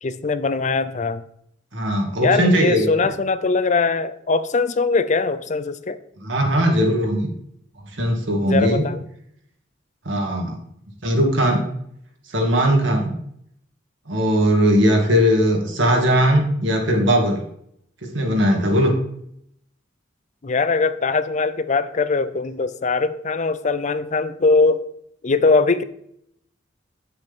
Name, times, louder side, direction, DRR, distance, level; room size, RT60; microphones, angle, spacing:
voice 1, 0.0-1.2 2.2-6.0 8.4-9.0 20.4-24.8 25.2-25.8, left 4 dB, 40° left, 13 dB, 0.6 m, -21 dB
voice 2, 1.7-3.1 6.2-7.3 7.9-8.9 10.0-10.6 11.0-11.6 12.3-13.1 14.1-17.4 18.1-18.9, equal, 75° right, 1 dB, 2.4 m, -19 dB
9.2 x 7.9 x 3.6 m, 0.71 s
head